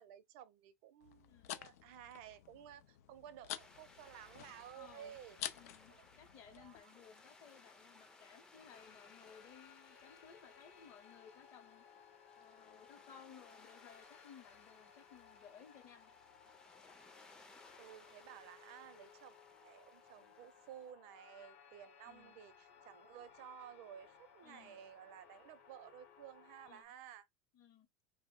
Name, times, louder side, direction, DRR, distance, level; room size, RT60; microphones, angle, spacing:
voice 1, 0.0-5.4 5.9-6.0 6.3-7.0 17.8-27.3, right 10 dB, 55° right, 0.4 m, -55 dB
sound 1, 1.0-6.8, left 11 dB, 85° left, 0.4 m, -50 dB
voice 2, 1.3-1.6 4.7-5.2 5.5-11.8 12.4-16.1 22.1-22.4 24.4-24.8 26.6-26.9 27.5-27.9, left 7 dB, 35° left, 0.7 m, -60 dB
sound 2, 3.6-20.9, left 3 dB, 10° left, 0.4 m, -63 dB
sound 3, 8.6-26.9, left 7 dB, 65° left, 0.8 m, -62 dB
2.9 x 2.0 x 3.5 m
supercardioid pair, 160°, 8 cm